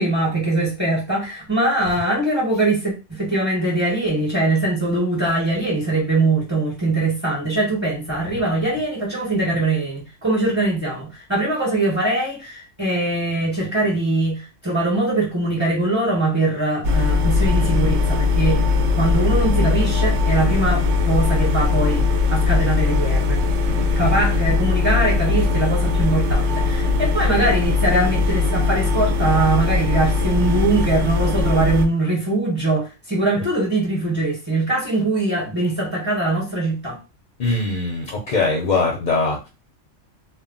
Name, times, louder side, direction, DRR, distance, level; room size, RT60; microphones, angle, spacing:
voice 1, 0.0-18.6 19.0-37.0 37.4-37.6, right 2 dB, 10° right, 1.0 m, -22 dB
sound 1, 16.8-31.9, left 4 dB, 70° right, 0.9 m, -20 dB
voice 2, 37.4-39.5, left 3 dB, 50° left, 0.6 m, -22 dB
2.2 x 2.1 x 3.7 m
omnidirectional pair, 1.2 m